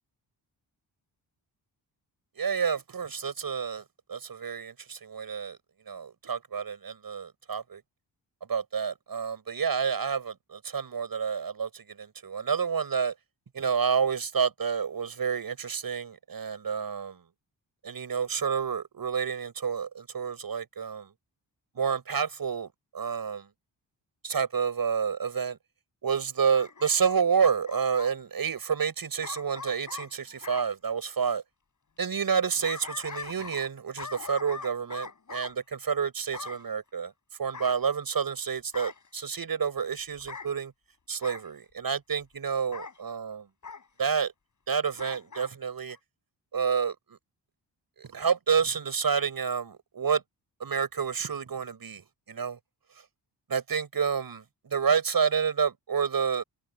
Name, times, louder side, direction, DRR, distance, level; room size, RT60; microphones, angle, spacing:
voice 1, 2.4-3.8 4.1-5.6 5.9-7.8 8.5-13.1 13.5-17.2 17.8-21.1 21.8-23.5 24.2-25.6 26.0-31.4 32.0-37.1 37.4-40.7 41.1-43.5 44.0-44.3 44.7-46.0 46.5-47.2 48.0-50.2 50.6-52.6 53.5-56.4, right 6 dB, 55° right, 7.5 m, -29 dB
Bark / Growling, 26.5-28.2 29.2-30.7 32.3-33.7 34.0-35.5 36.3-36.6 37.5-38.3 38.7-39.1 40.2-40.5 41.2-41.5 42.7-43.0 43.6-43.9 44.9-45.5 45.9-46.0, left 5 dB, 45° left, 6.8 m, -42 dB
wide cardioid pair, 120°, 42 cm